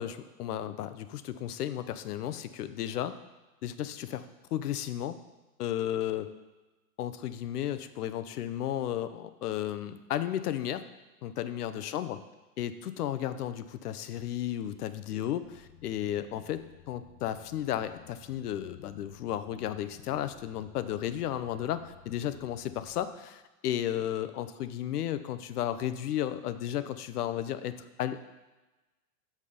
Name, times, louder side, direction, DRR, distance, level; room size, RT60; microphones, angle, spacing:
voice 1, 0.0-3.2 3.6-4.2 4.5-5.2 5.6-6.3 7.0-10.8 11.2-12.2 12.6-28.2, left 11 dB, 75° left, 12 dB, 0.6 m, -34 dB
sound 1, 15.4-23.1, left 8 dB, 40° left, 0.9 m, -56 dB
6.3 x 5.5 x 5.0 m, 1.1 s
hypercardioid pair, 115°, 47 cm